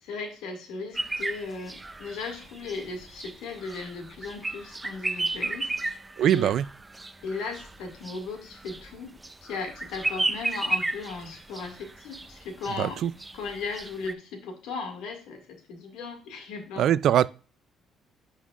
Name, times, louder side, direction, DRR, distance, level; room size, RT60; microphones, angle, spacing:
voice 1, 0.0-5.9 6.2-6.5 7.2-9.1 9.4-13.0 13.3-16.9, left 4 dB, 90° left, 2.1 m, -37 dB
sound 1, 0.9-14.1, right 2 dB, 15° right, 0.5 m, -34 dB
voice 2, 6.2-6.6 12.8-13.1 16.8-17.3, right 10 dB, 65° right, 0.3 m, -22 dB
11.0 x 5.5 x 2.5 m
cardioid pair, 125°, 0 cm